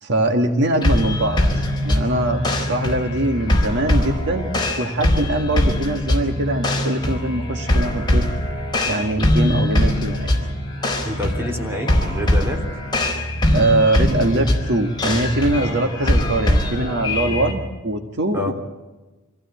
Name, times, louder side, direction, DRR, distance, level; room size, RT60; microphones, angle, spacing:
voice 1, 0.0-2.4 2.7-4.5 4.8-8.3 8.8-10.3 13.5-18.5, right 1 dB, 55° right, 4 dB, 1.6 m, -22 dB
sound 1, 0.8-17.5, left 1 dB, 20° left, 4.1 m, -22 dB
sound 2, 1.2-17.8, equal, 40° left, 4.1 m, -33 dB
voice 2, 11.0-12.6 15.6-15.8 18.3-18.5, left 1 dB, 10° right, 2 dB, 3.5 m, -27 dB
25.5 x 16.0 x 8.2 m, 1.2 s
head